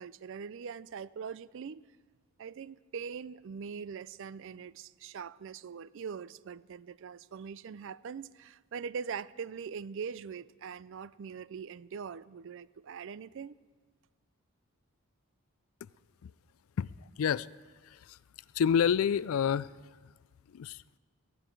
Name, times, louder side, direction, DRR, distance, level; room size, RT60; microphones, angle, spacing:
voice 1, 0.0-1.8 2.4-13.6, right 6 dB, 55° right, 0.4 m, -42 dB
voice 2, 17.8-18.2 18.5-19.7 20.5-20.8, left 7 dB, 70° left, 0.3 m, -28 dB
18.0 x 14.0 x 4.5 m
head